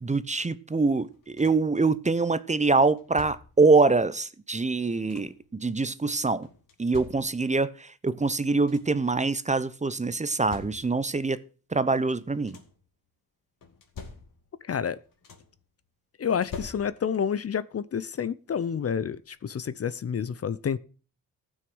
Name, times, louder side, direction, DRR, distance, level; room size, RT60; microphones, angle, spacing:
voice 1, 0.0-6.5 6.8-11.4 11.7-12.6, right 3 dB, 20° right, 0.7 m, -24 dB
sound 1, 1.0-1.8 2.8-3.7 4.6-5.5 6.4-7.6 8.2-8.3 8.5-9.1 10.0-11.2 12.1-12.9 13.6-14.6 14.9-15.7 16.3-17.3 18.6-18.7 19.2-19.4, left 5 dB, 70° left, 2.4 m, -46 dB
voice 2, 14.6-15.0 16.2-20.8, left 7 dB, 45° left, 0.6 m, -29 dB
14.5 x 6.4 x 6.2 m
cardioid pair, 70°, 34 cm